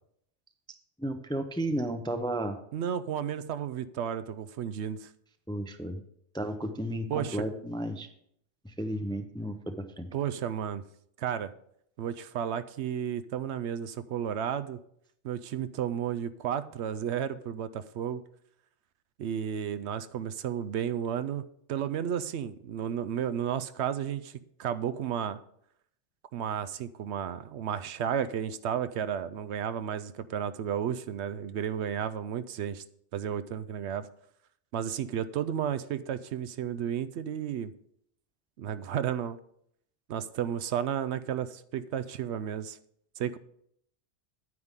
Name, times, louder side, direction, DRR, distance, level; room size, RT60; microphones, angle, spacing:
voice 1, 1.0-2.6 5.5-6.0 6.3-8.1 8.6-10.1, right 1 dB, 5° left, 7 dB, 0.5 m, -33 dB
voice 2, 2.7-5.1 7.1-7.4 10.1-10.8 11.2-11.5 12.0-14.8 15.2-18.2 19.2-21.4 21.7-25.4 26.3-32.8 33.1-34.1 34.7-37.7 38.6-39.4 40.1-42.8 43.2-43.4, right 9 dB, 75° right, 13 dB, 0.8 m, -32 dB
9.6 x 9.5 x 3.6 m, 0.70 s
omnidirectional pair, 1.2 m